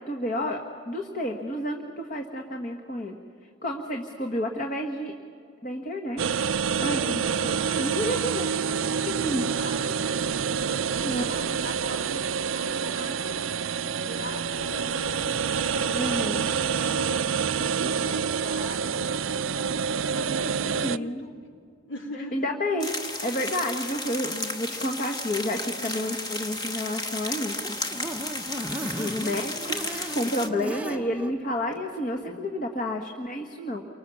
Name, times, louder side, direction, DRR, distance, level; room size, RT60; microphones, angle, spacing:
voice 1, 0.1-0.6 0.9-3.2 3.6-5.1 5.6-6.5 6.8-8.5 9.1-9.5 11.0-11.4 15.9-16.5 20.8-21.2 22.3-27.6 28.8-33.8, left 1 dB, 40° left, 3 dB, 1.5 m, -30 dB
sound 1, 6.2-21.0, right 6 dB, 80° right, 0.5 m, -27 dB
voice 2, 6.8-9.3 9.5-10.0 10.5-12.2 12.5-13.5 13.8-15.5 15.7-19.8 20.1-21.3 21.9-22.4, left 1 dB, 70° left, 1 dB, 3.5 m, -42 dB
sound 2, 22.8-30.5, left 2 dB, 20° left, 1.4 m, -33 dB
sound 3, 27.4-31.3 31.8-31.9 32.2-32.3, right 1 dB, 5° right, 0.7 m, -36 dB
29.5 x 24.5 x 7.1 m, 2.5 s
head